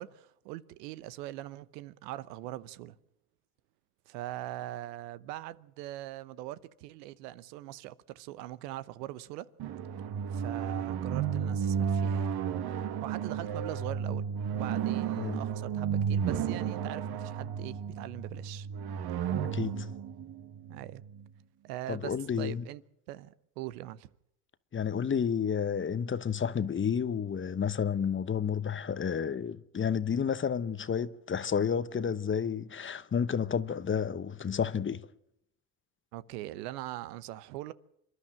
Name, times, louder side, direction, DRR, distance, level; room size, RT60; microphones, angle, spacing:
voice 1, 0.0-3.0 4.1-9.5 10.3-12.4 13.0-18.7 20.7-21.0 21.6-22.8 23.1-24.1 36.1-37.7, right 15 dB, 85° right, 1.0 m, -42 dB
sound 1, 9.6-21.2, right 7 dB, 50° right, 1.6 m, -33 dB
voice 2, 19.5-19.9 21.9-22.6 24.7-35.1, left 7 dB, 25° left, 1.0 m, -31 dB
27.0 x 11.5 x 8.8 m
supercardioid pair, 85°, 47 cm